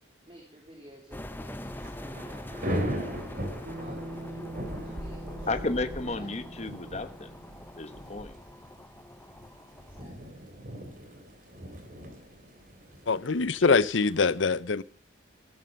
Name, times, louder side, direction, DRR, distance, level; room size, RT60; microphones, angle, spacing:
voice 1, 0.3-3.3 3.8-4.5 4.8-5.8 6.2-6.7 9.7-10.8, right 1 dB, 30° right, 3.5 m, -52 dB
sound 1, 1.1-10.0, left 1 dB, 10° left, 0.7 m, -44 dB
Thunder / Rain, 1.5-14.2, equal, 45° right, 3.5 m, -39 dB
Bass guitar, 3.7-8.0, right 2 dB, 65° right, 2.7 m, -44 dB
voice 2, 5.5-7.3 7.8-8.4 13.6-13.8, left 2 dB, 35° left, 1.1 m, -33 dB
voice 3, 13.1-14.8, left 4 dB, 85° left, 0.8 m, -24 dB
14.5 x 13.0 x 5.2 m
head